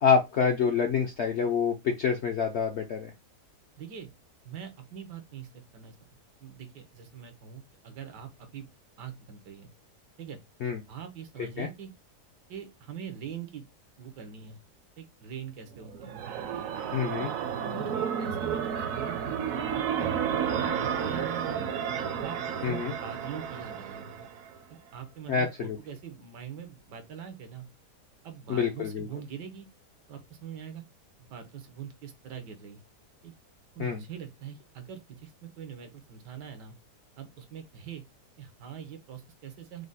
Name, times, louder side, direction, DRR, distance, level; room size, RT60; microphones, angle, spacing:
voice 1, 0.0-3.1 10.6-10.8 11.6-11.7 16.9-17.3 22.6-22.9 25.3-25.8 28.5-29.1 33.8-34.0, left 6 dB, 70° left, 0.6 m, -27 dB
voice 2, 3.8-4.1 4.4-5.9 6.4-8.7 9.0-9.7 10.2-10.4 10.9-11.9 12.5-13.7 14.0-14.6 15.0-16.1 16.5-16.6 17.2-17.3 17.7-19.2 19.6-21.7 22.1-24.3 24.7-27.7 28.2-29.7 30.1-30.8 31.2-32.8 33.2-33.3 33.7-36.8 37.2-38.0 38.4-39.9, right 8 dB, 85° right, 1.5 m, -43 dB
sound 1, 15.8-24.6, right 8 dB, 65° right, 0.9 m, -32 dB
4.9 x 2.1 x 3.9 m
omnidirectional pair, 1.8 m